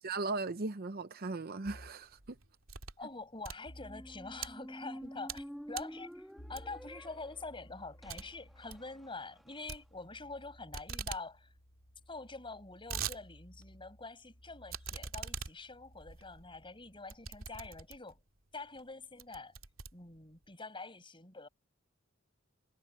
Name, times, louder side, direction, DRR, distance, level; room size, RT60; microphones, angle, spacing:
voice 1, 0.0-2.4, right 3 dB, 45° right, 0.8 m, -37 dB
sound 1, 1.7-2.1 3.6-4.6 6.4-17.7, equal, 65° left, 7.0 m, -58 dB
sound 2, 2.1-3.0 3.3-4.5 5.0-5.5 5.7-6.0 6.6-6.9 7.3-7.4 7.7-7.8 8.1-8.2 8.5-8.8 9.7-10.4 10.7-11.2 11.6-11.7 11.8-11.9 12.5-13.2 13.6-13.7 14.7-18.2 18.8-18.9 19.2-20.4, right 7 dB, 75° right, 2.6 m, -43 dB
voice 2, 3.0-11.5 12.1-18.2 18.5-19.5 19.9-21.5, left 3 dB, 25° left, 7.7 m, -46 dB
Squeak, 3.7-9.7, equal, ahead, 2.7 m, -50 dB
head